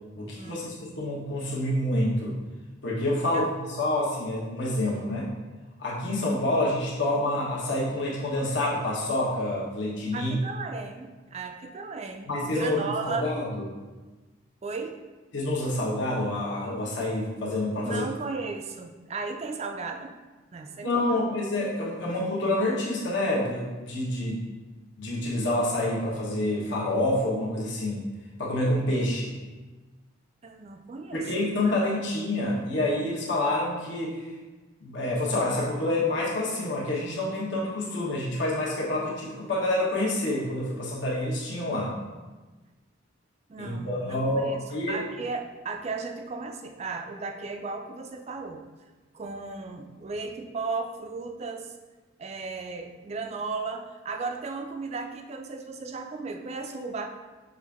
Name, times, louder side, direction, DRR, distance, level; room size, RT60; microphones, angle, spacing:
voice 1, 0.2-2.4 2.8-3.5 3.8-5.3 5.8-10.4 12.3-13.7 15.3-18.1 20.8-24.4 25.0-28.0 28.4-29.3 31.1-34.2 34.8-41.9 43.6-45.0, left 1 dB, 65° left, -5 dB, 1.1 m, -27 dB
voice 2, 10.1-13.3 14.6-15.0 17.9-20.2 20.5-21.2 30.4-31.7 43.5-44.6 44.9-48.6 49.1-51.7 52.2-57.1, right 4 dB, 30° right, 4 dB, 0.3 m, -35 dB
6.1 x 2.5 x 3.5 m, 1.2 s
head